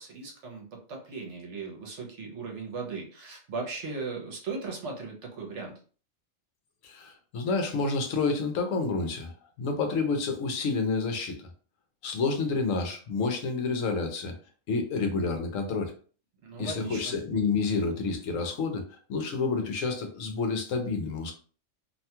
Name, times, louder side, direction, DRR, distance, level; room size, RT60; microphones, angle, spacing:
voice 1, 0.0-5.8 16.4-17.1, right 4 dB, 65° right, 1 dB, 1.0 m, -38 dB
voice 2, 6.8-9.3 9.6-11.5 12.0-14.3 14.7-15.9 16.6-21.3, left 4 dB, 75° left, 4 dB, 1.0 m, -29 dB
2.7 x 2.2 x 2.8 m, 0.40 s
omnidirectional pair, 1.4 m